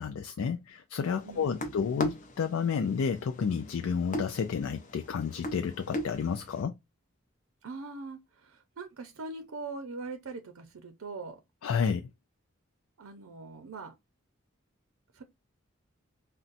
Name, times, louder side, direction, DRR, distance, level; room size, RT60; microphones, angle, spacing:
voice 1, 0.0-6.7 11.6-12.1, left 6 dB, 85° left, 0.4 m, -31 dB
sound 1, 1.0-6.6, left 1 dB, 35° left, 0.5 m, -39 dB
voice 2, 1.2-1.8 7.6-11.4 13.0-13.9 15.1-15.2, right 3 dB, 85° right, 0.6 m, -42 dB
3.9 x 2.2 x 2.5 m
head